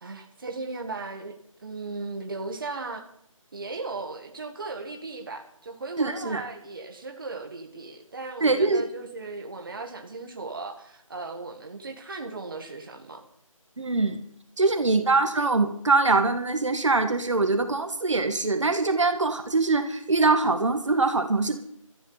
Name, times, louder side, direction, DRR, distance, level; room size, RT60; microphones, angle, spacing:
voice 1, 0.0-1.3 1.6-3.0 3.5-13.2, right 3 dB, 40° right, 4 dB, 1.7 m, -37 dB
voice 2, 6.0-6.4 8.4-8.8 13.8-14.2 14.6-21.6, right 3 dB, 60° right, 7 dB, 1.7 m, -23 dB
18.5 x 14.0 x 4.0 m, 0.67 s
figure-of-eight pair, 170°, 18 cm